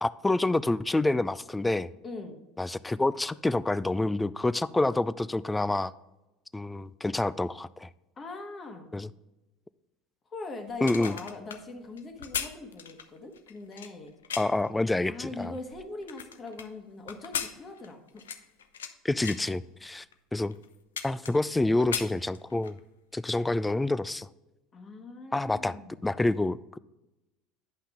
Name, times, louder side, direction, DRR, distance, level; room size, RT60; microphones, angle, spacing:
voice 1, 0.0-1.9 2.6-5.9 6.5-7.9 8.9-9.1 10.8-11.1 14.4-15.5 19.0-20.0 20.3-20.6 21.0-22.8 23.1-24.3 25.3-25.8 26.0-26.8, left 2 dB, 10° left, 17 dB, 0.3 m, -27 dB
voice 2, 2.0-2.4 8.2-8.9 10.3-14.1 15.1-18.2 24.7-26.1, left 3 dB, 30° left, 4 dB, 1.5 m, -41 dB
sound 1, 10.7-14.7 15.3-16.7 17.1-18.9 19.2-19.5 20.1-20.2 20.5-21.5 21.8-22.8 23.2-23.3, left 8 dB, 75° left, 0.5 m, -37 dB
10.0 x 5.6 x 3.5 m, 1.0 s
figure-of-eight pair, 70°, 0 cm